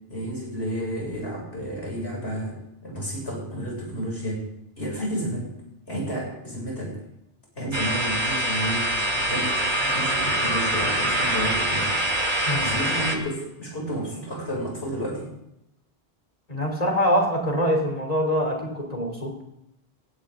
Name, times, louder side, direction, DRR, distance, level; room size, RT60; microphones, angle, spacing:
voice 1, 0.1-2.6 2.8-4.4 4.8-5.5 5.9-6.9 7.6-8.9 9.2-9.6 9.8-11.9 12.6-15.3, right 1 dB, 80° left, -3 dB, 7.4 m, -31 dB
sound 1, 7.7-13.2, right 1 dB, 50° right, 1.9 m, -24 dB
voice 2, 16.5-19.3, equal, 40° left, 2 dB, 3.6 m, -24 dB
17.0 x 17.0 x 3.8 m, 0.81 s
omnidirectional pair, 1.0 m